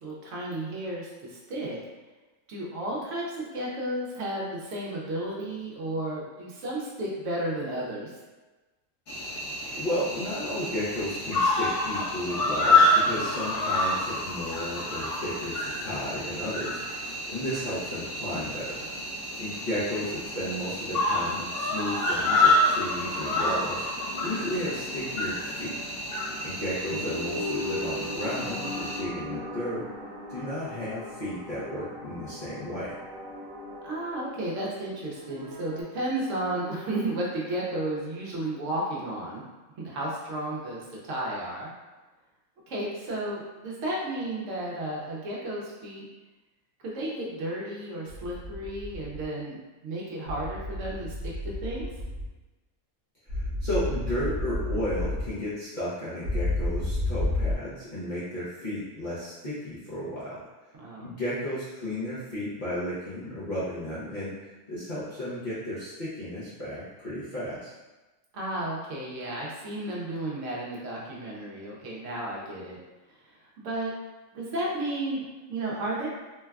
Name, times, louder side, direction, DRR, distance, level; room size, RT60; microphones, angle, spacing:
voice 1, 0.0-1.8 2.5-8.1 13.1-13.4 19.5-19.7 26.8-27.1 33.8-39.4 39.8-41.7 42.7-46.0 46.8-49.6 49.8-51.1 51.6-51.9 60.8-61.1 68.3-72.8 73.3-73.9 74.3-76.1, right 1 dB, 70° right, -4 dB, 0.9 m, -33 dB
Cricket, 9.1-29.0, left 2 dB, 65° left, 1.2 m, -28 dB
voice 2, 9.7-18.8 19.4-23.8 24.2-25.8 26.4-29.9 30.3-32.9 53.3-60.4 61.0-64.3 64.7-67.7, left 1 dB, 50° left, -11 dB, 0.6 m, -33 dB
sound 1, 18.0-35.8, left 1 dB, 85° right, 1.1 m, -41 dB
sound 2, 48.1-49.2 50.3-52.3 53.3-55.3 56.2-57.6, left 1 dB, 45° right, 0.8 m, -31 dB
3.1 x 2.2 x 2.3 m, 1.2 s
omnidirectional pair, 1.4 m